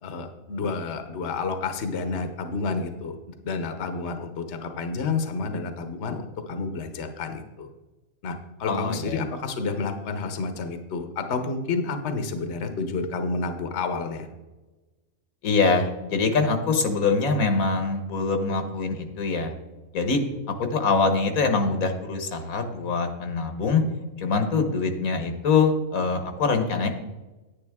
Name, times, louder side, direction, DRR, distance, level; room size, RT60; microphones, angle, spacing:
voice 1, 0.0-7.7 8.2-14.3, left 4 dB, 55° left, 7 dB, 1.1 m, -30 dB
voice 2, 8.6-9.2 15.4-19.5 19.9-20.2 20.6-23.8 24.2-26.9, left 4 dB, 80° left, 6 dB, 1.5 m, -24 dB
10.0 x 9.9 x 3.5 m, 1.1 s
omnidirectional pair, 1.5 m